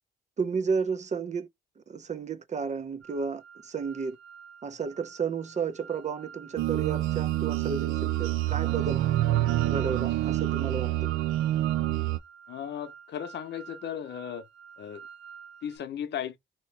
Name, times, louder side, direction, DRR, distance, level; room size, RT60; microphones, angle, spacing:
voice 1, 0.4-1.5 1.8-4.2 4.6-9.0 9.7-11.1, right 5 dB, 35° right, 0.6 m, -32 dB
sound 1, 3.0-15.8, right 7 dB, 5° right, 1.1 m, -50 dB
sound 2, 6.6-12.2, right 14 dB, 85° right, 0.5 m, -27 dB
voice 2, 12.5-14.5 14.8-15.0 15.6-16.4, left 9 dB, 60° left, 0.7 m, -36 dB
2.8 x 2.8 x 3.2 m
cardioid pair, 90°, 20 cm